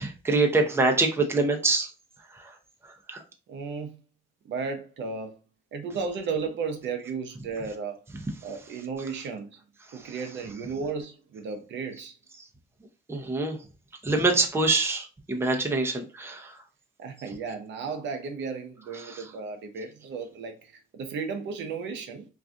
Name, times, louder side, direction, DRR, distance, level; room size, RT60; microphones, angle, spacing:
voice 1, 0.0-1.9 2.3-2.5 3.1-3.2 9.9-10.1 13.1-13.6 14.0-16.6 19.0-19.2, right 3 dB, 10° right, 0.6 m, -25 dB
voice 2, 3.5-4.0 4.4-5.4 5.7-8.0 8.4-9.6 9.9-12.2 17.0-22.3, right 5 dB, 70° right, 0.7 m, -34 dB
2.5 x 2.4 x 3.5 m
cardioid pair, 90°, 20 cm